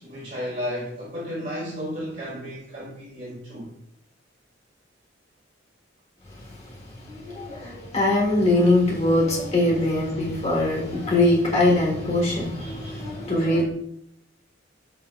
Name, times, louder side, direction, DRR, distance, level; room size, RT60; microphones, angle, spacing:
voice 1, 0.0-3.7 6.7-6.8, equal, 40° right, 1.3 m, -33 dB
voice 2, 7.1-13.6, left 1 dB, 35° left, 1.5 m, -22 dB
5.2 x 4.2 x 2.4 m
head